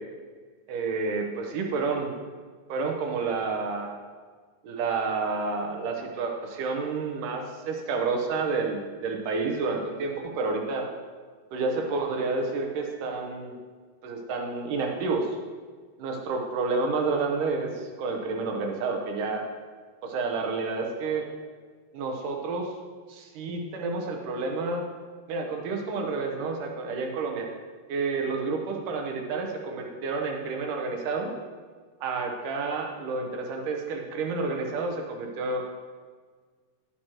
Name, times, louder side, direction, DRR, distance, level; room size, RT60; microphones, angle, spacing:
voice 1, 0.7-2.1 2.7-3.9 4.6-10.9 11.5-13.6 14.0-15.3 16.0-19.4 20.0-21.3 21.9-22.7 23.1-24.8 25.3-27.5 27.9-31.3 32.0-35.8, right 4 dB, 70° right, 2 dB, 2.1 m, -29 dB
10.5 x 9.2 x 2.9 m, 1.5 s
omnidirectional pair, 4.4 m